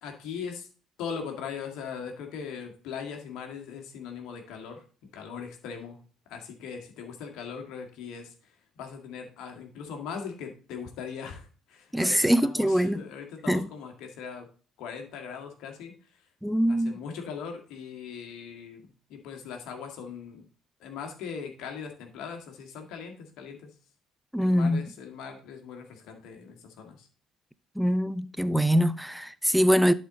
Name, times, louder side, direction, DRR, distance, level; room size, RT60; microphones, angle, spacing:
voice 1, 0.0-0.7 1.0-4.8 5.1-6.0 6.3-14.5 14.8-15.9 16.7-20.4 20.8-23.7 24.4-27.1 28.4-28.6, left 6 dB, 65° left, 1.8 m, -40 dB
voice 2, 11.9-13.0 13.5-13.7 16.4-16.9 24.3-24.9 27.8-29.9, equal, ahead, 0.6 m, -23 dB
11.0 x 4.4 x 4.0 m
hypercardioid pair, 50°, 0 cm